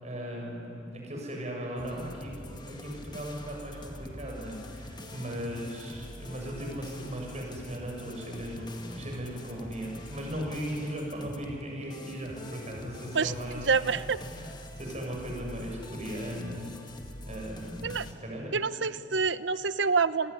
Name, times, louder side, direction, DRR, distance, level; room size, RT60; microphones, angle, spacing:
voice 1, 0.0-16.7 17.2-18.6, equal, 35° right, 0 dB, 7.0 m, -37 dB
Let Me Loop, 1.8-18.1, left 1 dB, 25° left, 2.0 m, -45 dB
voice 2, 13.7-14.2 17.8-18.1 18.5-20.3, right 5 dB, 70° right, 14 dB, 0.9 m, -27 dB
28.5 x 21.0 x 10.0 m, 3.0 s
head